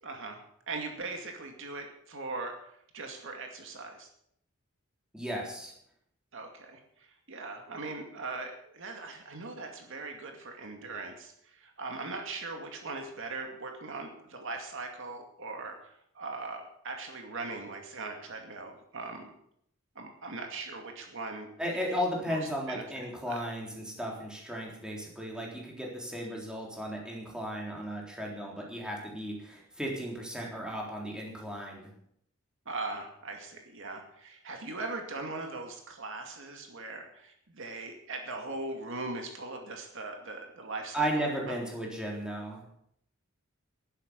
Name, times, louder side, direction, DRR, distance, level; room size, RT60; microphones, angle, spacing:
voice 1, 0.0-0.4 0.7-2.6 2.9-4.1 6.3-19.3 20.0-21.5 21.9-22.0 22.3-22.4 22.7-23.4 32.7-41.6, right 3 dB, 65° right, 3 dB, 2.3 m, -40 dB
voice 2, 5.1-5.7 21.6-31.9 40.9-42.6, equal, 5° right, -2 dB, 3.7 m, -35 dB
11.5 x 11.5 x 6.9 m, 0.70 s
head